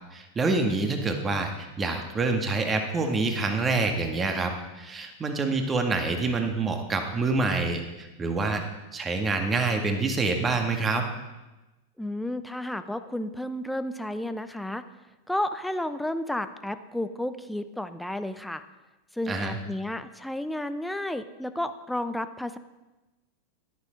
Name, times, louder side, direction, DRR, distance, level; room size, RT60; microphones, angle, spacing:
voice 1, 0.1-8.6 8.9-11.1 19.3-19.6, right 3 dB, 20° right, 5 dB, 1.8 m, -27 dB
voice 2, 12.0-14.8 15.3-18.6 19.1-22.6, left 1 dB, 5° left, 11 dB, 0.7 m, -32 dB
13.5 x 10.5 x 5.2 m, 1.1 s
hypercardioid pair, 100°, 0 cm